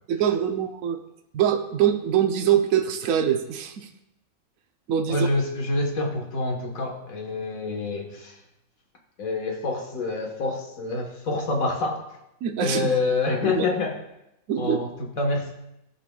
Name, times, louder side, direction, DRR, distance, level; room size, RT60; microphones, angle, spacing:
voice 1, 0.1-1.0 1.3-3.9 4.9-5.2 12.4-12.9 13.4-13.7 14.5-14.8, right 9 dB, 75° right, 6 dB, 1.1 m, -23 dB
voice 2, 5.1-8.4 9.2-12.0 12.6-14.0 14.6-15.5, left 3 dB, 75° left, 1 dB, 1.7 m, -27 dB
16.0 x 5.6 x 2.3 m, 0.85 s
omnidirectional pair, 1.5 m